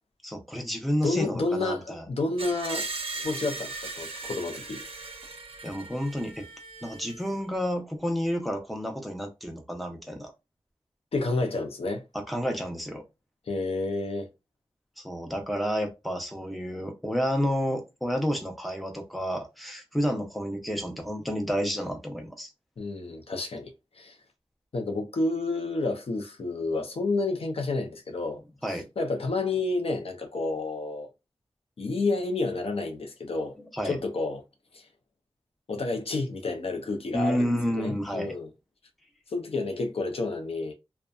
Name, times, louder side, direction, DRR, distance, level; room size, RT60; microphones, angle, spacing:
voice 1, 0.2-2.0 5.6-6.5 6.8-10.3 12.1-13.0 15.0-22.5 28.6-28.9 33.7-34.0 37.1-38.4, equal, ahead, 0.6 m, -30 dB
voice 2, 1.0-2.9 3.1-4.8 11.1-12.0 13.5-14.3 22.8-24.2 24.7-28.4 29.0-31.1 31.8-33.5 33.8-34.4 34.7-34.9 35.7-38.5 39.3-40.7, left 3 dB, 70° left, 0.5 m, -30 dB
Screech, 2.4-7.3, right 3 dB, 65° right, 0.5 m, -38 dB
2.6 x 2.1 x 2.3 m
wide cardioid pair, 95°, 11 cm